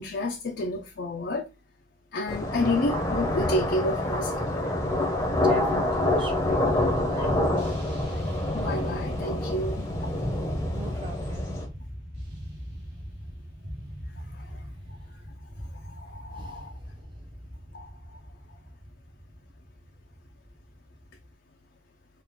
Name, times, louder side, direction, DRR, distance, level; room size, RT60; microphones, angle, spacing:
voice 1, 0.0-1.5 2.1-4.5 7.2-7.3 8.5-10.1 14.4-14.5 16.0-16.7 17.7-17.9, left 1 dB, 60° left, 0.5 m, -30 dB
sound 1, 2.3-11.7, left 1 dB, 15° left, 0.8 m, -27 dB
voice 2, 5.4-6.6 6.9-7.4 10.7-11.6 16.3-17.2, right 1 dB, 25° right, 1.0 m, -41 dB
sound 2, 5.6-6.7 7.6-21.3, equal, 60° right, 1.8 m, -38 dB
4.3 x 2.5 x 3.6 m
head